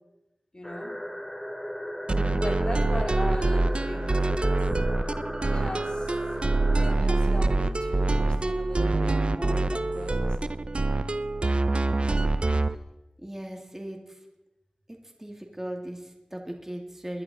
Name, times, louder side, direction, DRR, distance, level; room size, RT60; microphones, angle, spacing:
voice 1, 0.5-1.0 2.1-4.3 5.5-6.1 6.7-10.3, left 1 dB, 40° left, 2 dB, 2.8 m, -38 dB
sound 1, 0.6-7.0, equal, 10° left, 2.8 m, -37 dB
sound 2, 2.1-12.7, right 2 dB, 50° right, 0.6 m, -25 dB
voice 2, 13.2-14.0 15.2-17.2, right 1 dB, 20° right, 2 dB, 2.5 m, -37 dB
21.0 x 11.0 x 4.3 m, 0.96 s
wide cardioid pair, 45°, 2 cm